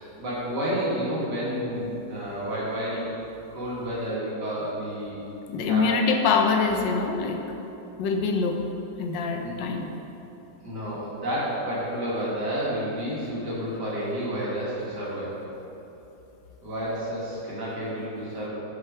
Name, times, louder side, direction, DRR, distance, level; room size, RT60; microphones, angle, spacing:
voice 1, 0.0-3.1 3.5-5.2 5.7-6.1 9.4-9.5 10.6-15.4 16.6-18.5, equal, 65° right, -7 dB, 2.3 m, -30 dB
voice 2, 5.5-7.4 8.0-8.6 9.0-9.9, left 4 dB, 80° left, 4 dB, 1.3 m, -24 dB
6.5 x 5.8 x 4.6 m, 3.0 s
omnidirectional pair, 2.0 m